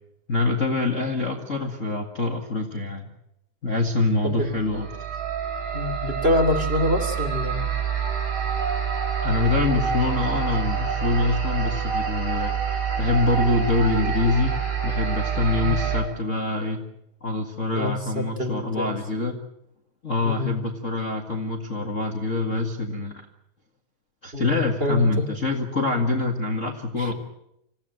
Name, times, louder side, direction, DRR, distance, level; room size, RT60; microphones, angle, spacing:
voice 1, 0.3-3.1 3.6-4.9 9.2-16.8 17.2-19.4 20.0-23.1 24.2-27.1, left 2 dB, 30° left, 2 dB, 1.8 m, -25 dB
sound 1, 4.5-16.0, right 7 dB, 75° right, 7.6 m, -27 dB
voice 2, 5.7-7.7 15.6-15.8 17.8-18.9 20.2-20.6 24.3-25.3 27.0-27.1, left 2 dB, 20° right, 5 dB, 2.7 m, -26 dB
27.0 x 16.5 x 9.2 m, 0.81 s
omnidirectional pair, 3.4 m